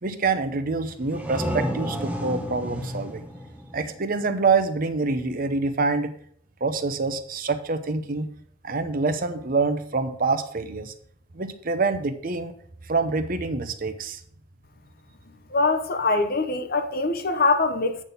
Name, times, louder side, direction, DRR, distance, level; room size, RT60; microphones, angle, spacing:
voice 1, 0.0-3.3 3.7-6.1 6.6-8.3 8.6-10.9 11.3-12.5 12.8-14.2, right 4 dB, 45° right, 0.7 m, -26 dB
sound 1, 0.9-4.5, equal, 5° right, 0.8 m, -32 dB
voice 2, 15.5-18.0, left 3 dB, 45° left, 0.8 m, -23 dB
8.5 x 4.0 x 6.7 m
head